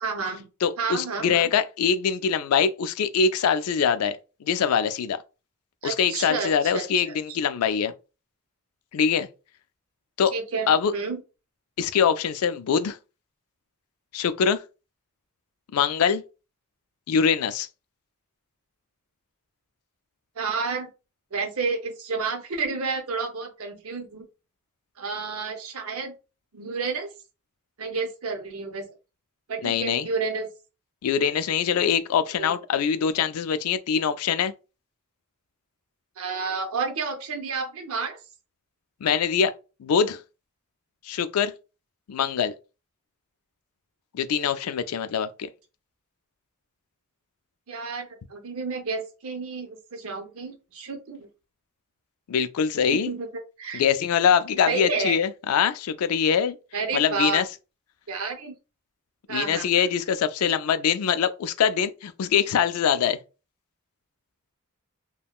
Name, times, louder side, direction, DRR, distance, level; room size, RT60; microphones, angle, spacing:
voice 1, 0.0-0.5 0.8-1.5 5.8-7.1 10.3-11.2 20.4-20.9 21.3-24.3 25.0-26.1 26.5-27.1 27.8-28.9 29.5-30.5 32.4-32.5 36.2-38.2 47.7-51.3 52.9-53.3 53.6-53.8 54.7-55.2 56.7-57.4 58.1-58.5 59.3-59.7, right 4 dB, 70° right, 0.7 m, -30 dB
voice 2, 0.6-5.2 5.8-7.9 8.9-9.3 10.2-10.3 10.7-10.9 11.8-13.0 14.1-14.6 15.7-16.2 17.1-17.7 29.6-30.1 31.0-34.5 39.0-39.5 39.8-40.2 41.0-41.5 42.1-42.5 44.1-45.3 52.3-53.1 53.7-56.6 56.9-57.4 59.3-63.2, left 7 dB, 80° left, 0.3 m, -23 dB
3.5 x 2.1 x 2.3 m
head